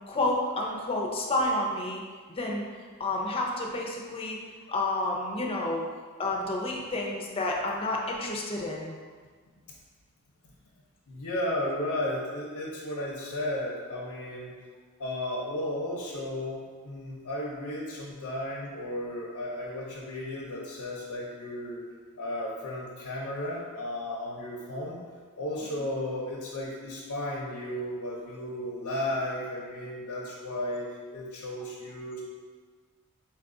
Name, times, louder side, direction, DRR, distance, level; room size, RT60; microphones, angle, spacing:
voice 1, 0.1-2.0 2.4-2.6 3.0-4.4 4.7-5.9 6.2-8.9, left 2 dB, 25° left, -1 dB, 0.5 m, -30 dB
voice 2, 11.1-14.6 15.0-21.9 22.2-25.0 25.4-32.2, left 1 dB, 85° left, -3 dB, 0.7 m, -34 dB
4.5 x 2.4 x 3.7 m, 1.6 s
head